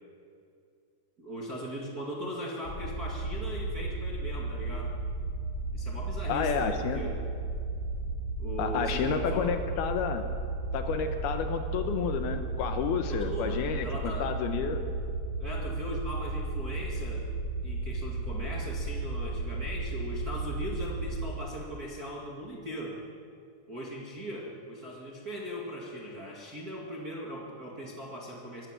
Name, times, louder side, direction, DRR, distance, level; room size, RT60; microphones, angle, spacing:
voice 1, 1.2-4.9 5.7-7.2 8.4-9.5 13.1-14.3 15.4-17.3 17.6-23.0 23.7-28.7, equal, 35° right, -2 dB, 1.6 m, -39 dB
sound 1, 2.6-21.3, right 2 dB, 55° left, 0.9 m, -34 dB
voice 2, 6.3-7.0 8.6-10.3 10.7-14.8, left 6 dB, 75° left, 7 dB, 2.7 m, -30 dB
23.5 x 13.0 x 9.0 m, 2.5 s
omnidirectional pair, 5.0 m